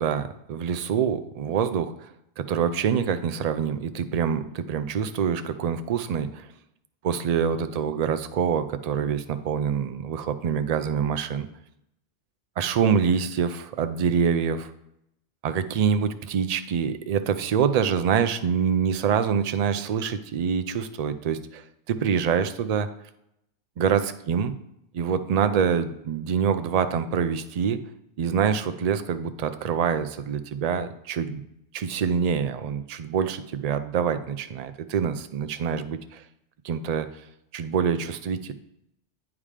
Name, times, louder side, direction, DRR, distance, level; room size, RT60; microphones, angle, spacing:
voice 1, 0.0-2.1 2.4-6.5 7.0-11.5 12.6-14.7 15.4-22.9 23.8-24.5 24.9-27.8 28.2-31.4 31.7-36.2 36.6-37.1 37.5-38.5, right 7 dB, 60° right, 10 dB, 0.4 m, -25 dB
8.6 x 3.6 x 4.9 m, 0.78 s
omnidirectional pair, 1.1 m